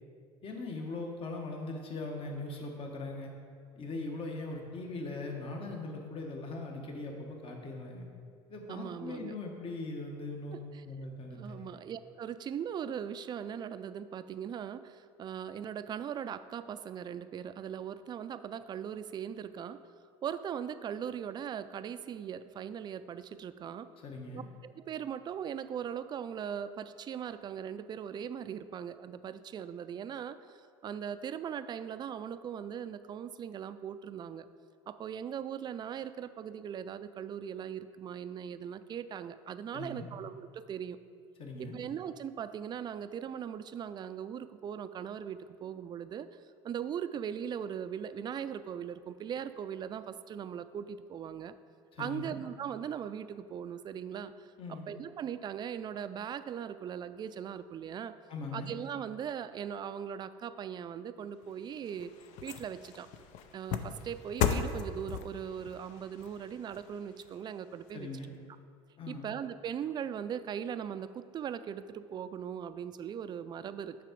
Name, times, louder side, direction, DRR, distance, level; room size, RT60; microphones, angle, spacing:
voice 1, 0.4-3.3 3.7-8.1 8.5-10.6 10.8-11.7 24.0-24.4 39.7-40.1 41.4-41.8 51.9-52.4 54.6-54.9 58.3-58.7 67.9-68.3 69.0-69.3, left 2 dB, 45° left, 1 dB, 1.3 m, -40 dB
voice 2, 8.7-9.4 10.5-10.8 11.3-19.8 20.2-23.9 24.3-34.5 34.9-41.0 41.6-46.3 46.6-51.5 52.0-58.1 58.5-62.1 62.4-63.1 63.5-68.1 69.1-74.0, right 8 dB, 35° right, 12 dB, 0.3 m, -39 dB
sound 1, 61.4-67.9 68.4-68.5, left 7 dB, 65° left, 0.5 m, -37 dB
7.4 x 4.7 x 5.2 m, 2.2 s
supercardioid pair, 95°, 13 cm